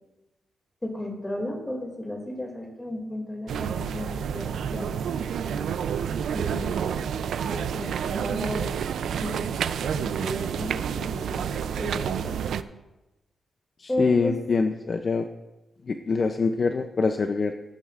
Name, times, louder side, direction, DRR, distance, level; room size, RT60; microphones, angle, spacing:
voice 1, 0.8-5.1 5.4-5.7 6.3-8.7 9.2-12.4 13.9-14.3, left 1 dB, 10° left, 0 dB, 2.3 m, -34 dB
sound 1, 3.5-12.6, right 8 dB, 90° right, 0.4 m, -29 dB
voice 2, 13.8-15.2 15.9-17.5, left 4 dB, 40° left, 6 dB, 0.5 m, -24 dB
18.0 x 8.9 x 2.5 m, 1.0 s
wide cardioid pair, 155°, 0 cm